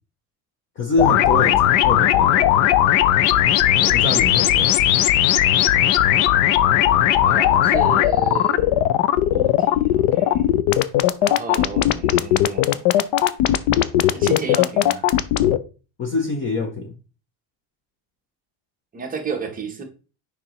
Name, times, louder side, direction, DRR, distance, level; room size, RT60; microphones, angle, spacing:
voice 1, 0.8-2.5 3.8-4.8 16.0-16.9, left 3 dB, 25° left, 0.6 m, -25 dB
sound 1, 1.0-15.6, left 12 dB, 80° left, 0.6 m, -17 dB
voice 2, 7.2-8.9 9.3-10.4 11.2-12.8 14.1-15.1 18.9-19.8, right 5 dB, 20° right, 0.8 m, -32 dB
7.2 x 5.1 x 3.0 m
cardioid pair, 180°, 46 cm